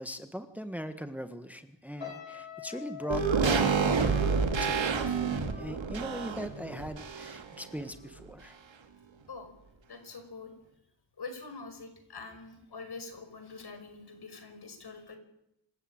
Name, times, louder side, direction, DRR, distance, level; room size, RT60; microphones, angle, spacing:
voice 1, 0.0-8.6, equal, 5° right, 9 dB, 1.5 m, -40 dB
sound 1, 2.0-7.3 7.6-7.9, left 9 dB, 80° left, 7.9 m, -47 dB
sound 2, 3.1-7.6 7.9-8.0, right 5 dB, 80° right, 2.7 m, -28 dB
voice 2, 9.9-10.5 11.2-15.2, left 4 dB, 60° left, 7 dB, 5.5 m, -44 dB
26.5 x 14.5 x 8.9 m, 0.82 s
wide cardioid pair, 80°, 45 cm